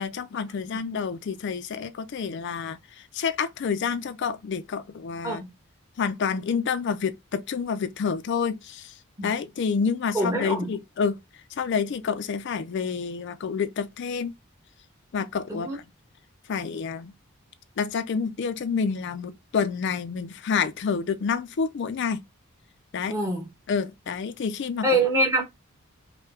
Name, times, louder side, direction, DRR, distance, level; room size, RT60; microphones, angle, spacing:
voice 1, 0.0-5.4 6.0-8.9 9.2-11.2 11.5-14.3 15.1-15.8 16.5-17.1 17.8-22.2 22.9-23.2 23.7-24.9, left 6 dB, 55° left, 0.4 m, -28 dB
voice 2, 10.1-10.7 15.5-15.8 23.1-23.4 24.8-25.4, right 1 dB, 15° right, 1.3 m, -24 dB
5.4 x 2.2 x 3.6 m
head